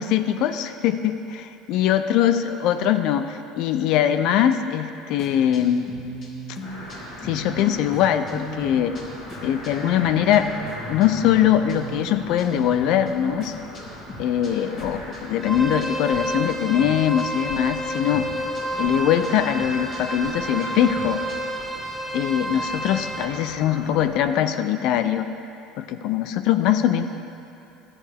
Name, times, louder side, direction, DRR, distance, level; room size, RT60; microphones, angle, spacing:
voice 1, 0.0-2.3 2.6-5.9 7.2-8.9 9.4-10.5 10.9-13.6 14.2-18.3 18.8-21.2 22.1-25.3 25.8-27.0, left 10 dB, 65° left, 10 dB, 0.4 m, -22 dB
sound 1, 5.2-16.2 16.5-17.6 17.9-21.6, equal, 45° left, 2.3 m, -39 dB
sound 2, 6.6-24.3, left 1 dB, 85° left, 2.7 m, -40 dB
sound 3, 15.4-23.2, right 1 dB, 5° right, 1.7 m, -30 dB
12.5 x 9.8 x 3.5 m, 2.9 s
hypercardioid pair, 80°, 0 cm